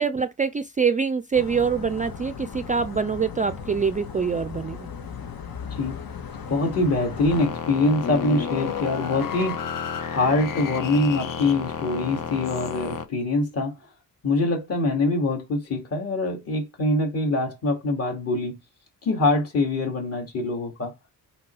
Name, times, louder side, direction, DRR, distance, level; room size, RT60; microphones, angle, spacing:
voice 1, 0.0-4.9, right 6 dB, 25° right, 0.3 m, -25 dB
sound 1, 1.3-7.5, left 6 dB, 80° left, 1.6 m, -37 dB
sound 2, 5.9-13.0, left 7 dB, 65° left, 1.2 m, -31 dB
voice 2, 6.5-13.8 14.2-18.6 19.0-20.9, left 2 dB, 45° left, 2.6 m, -24 dB
5.9 x 5.1 x 4.8 m
wide cardioid pair, 175°, 35 cm